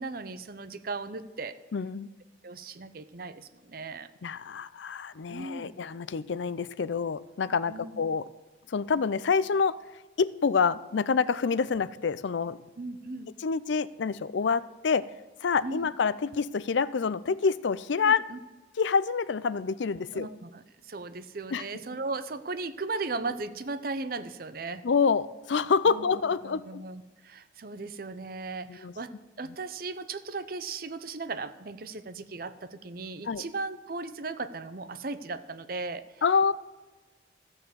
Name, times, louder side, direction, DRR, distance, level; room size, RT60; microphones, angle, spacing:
voice 1, 0.0-1.6 2.4-4.1 5.3-5.7 7.7-8.0 12.8-13.3 15.6-15.9 18.0-18.4 20.1-24.8 25.9-26.0 26.4-36.2, right 3 dB, 50° right, 12 dB, 0.7 m, -37 dB
voice 2, 1.7-2.1 4.2-8.3 8.7-9.8 10.2-12.6 13.4-15.1 15.4-18.2 18.8-20.3 21.5-21.7 24.8-26.8 28.7-28.9 33.3-33.4 36.2-36.5, left 5 dB, 80° left, 18 dB, 0.5 m, -27 dB
14.0 x 7.1 x 7.7 m, 1.2 s
head